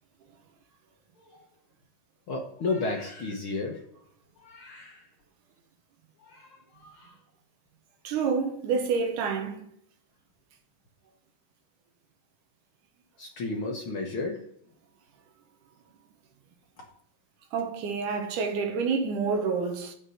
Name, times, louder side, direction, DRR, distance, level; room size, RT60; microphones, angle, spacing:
voice 1, 2.3-3.8 4.4-5.1 6.2-7.2 13.2-14.4, left 3 dB, 60° left, 1.4 m, -33 dB
voice 2, 8.0-9.6 17.5-20.0, right 5 dB, 70° right, 2.6 m, -28 dB
8.9 x 6.6 x 5.5 m
omnidirectional pair, 4.0 m